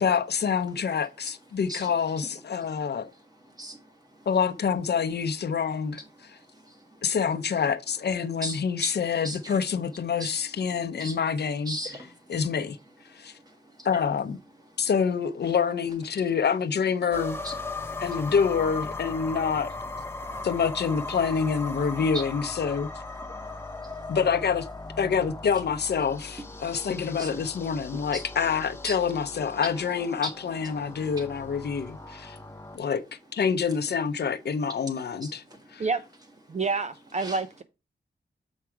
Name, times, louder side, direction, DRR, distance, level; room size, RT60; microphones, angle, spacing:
voice 1, 0.0-3.1 4.3-6.0 7.0-11.8 12.3-12.8 13.1-13.3 13.8-14.4 14.8-17.4 18.0-19.7 20.4-22.9 24.1-24.7 25.0-32.4 32.7-33.0 33.3-35.4 35.7-35.8, left 6 dB, 65° left, 0.6 m, -27 dB
voice 2, 2.6-4.3 6.1-7.1 8.4-9.0 9.2-9.6 10.2-10.3 11.0-11.2 11.6-12.4 13.1-13.9 14.7-14.9 17.4-18.0 20.1-20.5 22.1-22.2 23.2-24.2 26.6-26.7 27.2-27.4 27.9-28.2 28.8-29.0 30.2-30.3 31.0-31.3 31.7-32.9 34.9-35.9 36.5-36.6 37.2-37.4, right 1 dB, 20° right, 1.6 m, -40 dB
sound 1, 17.1-32.8, left 3 dB, 15° left, 0.6 m, -38 dB
voice 3, 36.5-37.6, right 4 dB, 40° right, 0.4 m, -28 dB
7.3 x 4.8 x 4.5 m
wide cardioid pair, 165°, 18 cm